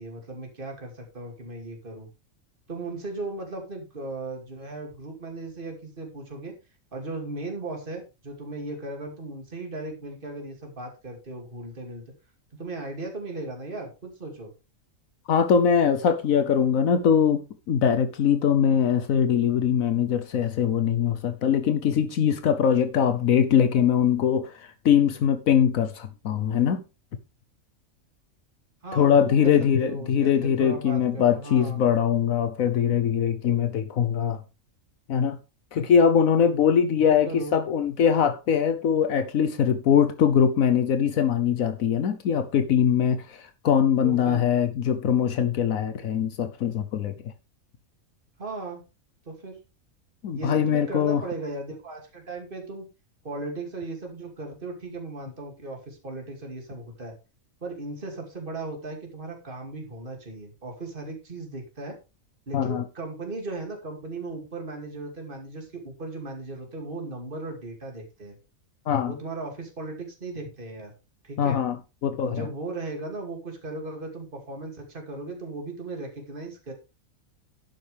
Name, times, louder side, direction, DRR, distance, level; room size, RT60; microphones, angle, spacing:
voice 1, 0.0-2.1 2.7-6.5 6.9-12.0 12.5-14.5 23.1-23.4 28.8-31.8 36.9-37.5 44.0-44.4 48.4-48.8 49.3-49.6 50.3-52.9 53.2-57.1 57.6-62.0 62.5-68.4 69.1-70.9 71.2-71.6 72.3-76.7, right 2 dB, 40° right, 2.8 m, -37 dB
voice 2, 15.3-24.5 24.8-26.8 28.9-34.4 35.1-35.4 35.7-47.1 50.2-51.2 62.5-62.8 68.9-69.1 71.4-71.8 72.0-72.5, left 8 dB, 80° left, 1.3 m, -22 dB
12.0 x 9.5 x 3.4 m
omnidirectional pair, 1.4 m